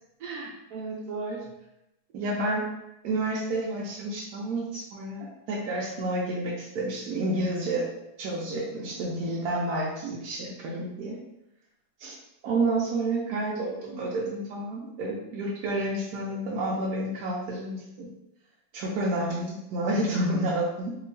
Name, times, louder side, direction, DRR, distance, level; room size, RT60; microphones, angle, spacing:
voice 1, 0.2-1.4 2.1-2.7 3.0-7.9 8.2-11.2 12.0-12.2 12.4-18.1 18.7-21.0, right 2 dB, 75° right, -5 dB, 1.0 m, -30 dB
2.9 x 2.7 x 2.6 m, 0.87 s
omnidirectional pair, 1.7 m